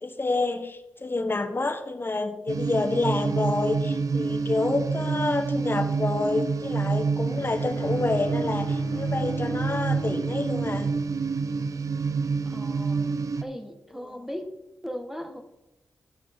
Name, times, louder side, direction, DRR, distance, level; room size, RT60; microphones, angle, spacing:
voice 1, 0.0-10.9, left 3 dB, 35° left, 4 dB, 1.5 m, -28 dB
sound 1, 2.5-13.4, right 4 dB, 60° right, 0.6 m, -28 dB
Bowed string instrument, 7.3-11.5, left 4 dB, 60° left, 0.7 m, -40 dB
voice 2, 12.4-13.1 13.4-14.5 14.8-15.4, equal, 5° right, 5 dB, 1.7 m, -37 dB
12.5 x 6.3 x 3.8 m, 0.95 s
supercardioid pair, 40°, 6 cm